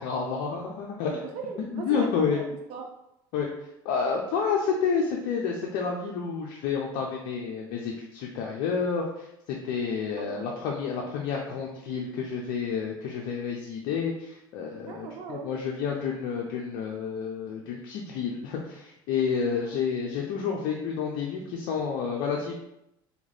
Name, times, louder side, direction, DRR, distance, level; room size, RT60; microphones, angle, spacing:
voice 1, 0.0-1.1 1.7-2.4 3.3-3.5 3.8-22.5, left 6 dB, 70° left, 0 dB, 0.6 m, -30 dB
voice 2, 1.1-2.8 10.2-10.4 14.9-15.7 19.6-19.8, right 5 dB, 60° right, 2 dB, 0.6 m, -39 dB
3.6 x 3.0 x 4.0 m, 0.84 s
supercardioid pair, 85°, 12 cm